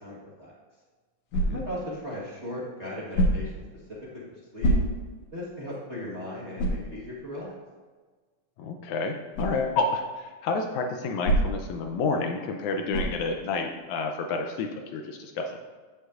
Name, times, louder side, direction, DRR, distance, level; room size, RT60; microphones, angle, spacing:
voice 1, 0.0-0.5 1.5-3.5 4.3-4.7 5.3-7.5, left 1 dB, 50° right, -7 dB, 0.8 m, -37 dB
sound 1, 1.3-1.8 3.1-3.6 4.6-5.2 5.7-5.8 6.6-6.9 9.3-9.6 11.2-11.7 12.9-13.3, right 1 dB, 60° left, 2.3 m, -25 dB
voice 2, 8.6-15.5, left 3 dB, 75° left, 3 dB, 1.9 m, -29 dB
15.0 x 5.5 x 2.5 m, 1.4 s
omnidirectional pair, 3.7 m